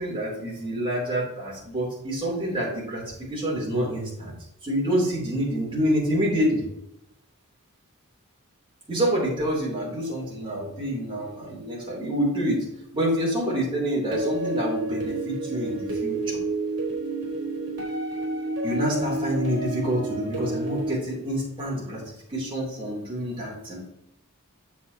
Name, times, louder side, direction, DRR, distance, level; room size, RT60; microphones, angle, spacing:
voice 1, 0.0-3.0 3.3-4.3 4.6-6.6 8.9-12.6 12.9-16.4 18.6-22.0 22.3-23.8, equal, 25° right, -5 dB, 3.0 m, -27 dB
sound 1, 14.1-20.9, right 2 dB, 55° right, 3.1 m, -29 dB
8.3 x 7.2 x 2.8 m, 0.81 s
head